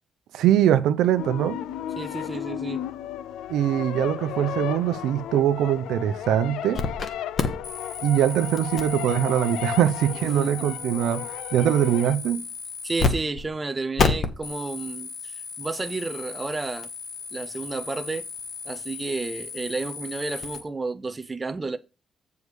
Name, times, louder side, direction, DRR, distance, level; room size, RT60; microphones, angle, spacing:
voice 1, 0.3-1.6 3.5-6.8 8.0-11.2 11.5-12.4, right 11 dB, 80° right, 0.7 m, -22 dB
sound 1, 1.2-12.2, left 11 dB, 85° left, 0.5 m, -34 dB
voice 2, 2.0-2.8 10.3-10.7 12.8-16.9 17.3-18.2 18.7-21.8, right 3 dB, 15° right, 0.4 m, -31 dB
sound 2, 6.7-7.1 7.4-13.1 13.4-13.5 14.0-20.6, left 5 dB, 35° left, 1.0 m, -32 dB
8.2 x 4.8 x 5.3 m
cardioid pair, 170°, 0 cm